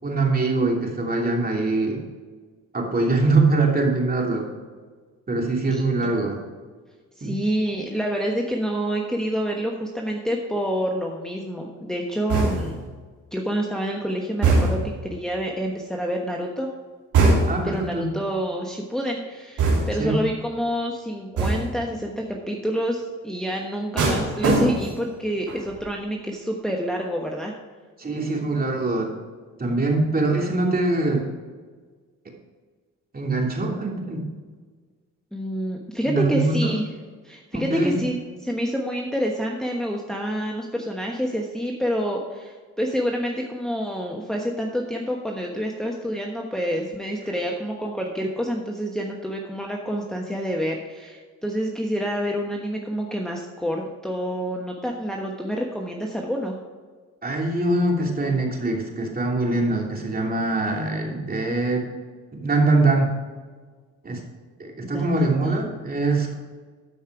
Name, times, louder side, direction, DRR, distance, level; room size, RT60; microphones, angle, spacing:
voice 1, 0.0-2.0 2.7-4.5 5.3-6.4 7.2-7.4 17.5-18.1 20.0-20.2 28.0-29.1 29.6-31.2 33.1-34.3 36.1-36.8 37.5-38.0 57.2-61.9 62.3-63.1 64.0-64.2 64.6-66.3, right 2 dB, 30° right, 0 dB, 2.9 m, -23 dB
voice 2, 7.2-12.8 13.3-16.7 17.6-27.5 35.3-36.8 37.2-38.2 38.4-56.5 64.8-65.6, equal, ahead, 0 dB, 1.2 m, -28 dB
sound 1, 12.3-12.9 14.4-15.0 17.1-17.8 19.6-20.1 21.4-21.8 24.0-25.1 25.5-25.8, right 3 dB, 80° right, 3.4 m, -21 dB
13.0 x 5.4 x 4.8 m, 1.5 s
cardioid pair, 90°, 30 cm